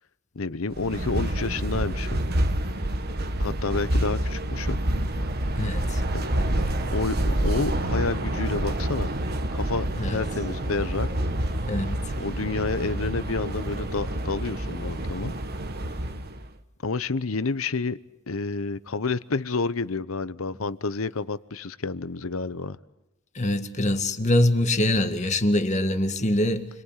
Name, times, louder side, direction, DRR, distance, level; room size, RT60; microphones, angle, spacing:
voice 1, 0.3-2.3 3.4-4.8 6.9-9.1 9.5-11.1 12.2-15.4 16.8-18.0 18.3-22.8, left 3 dB, 80° left, 0.9 m, -29 dB
sound 1, 0.7-16.5, right 1 dB, 50° right, 1.5 m, -28 dB
voice 2, 5.6-6.0 10.0-10.2 11.7-12.0 23.3-26.7, left 1 dB, 35° left, 1.9 m, -24 dB
28.5 x 22.5 x 7.4 m
head